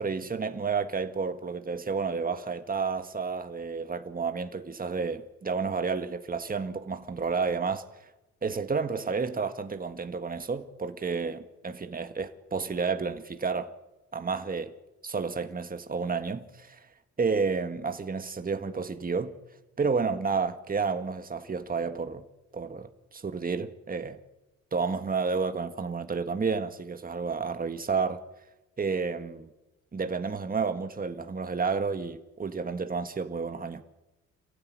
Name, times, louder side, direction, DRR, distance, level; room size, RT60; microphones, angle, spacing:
voice 1, 0.0-7.8 8.4-13.7 14.1-14.7 15.0-16.8 17.2-19.3 19.8-22.2 22.5-24.2 24.7-28.2 28.8-29.5 29.9-33.8, right 5 dB, 30° right, 1.9 m, -31 dB
27.5 x 15.0 x 9.7 m
cardioid pair, 90°, 30 cm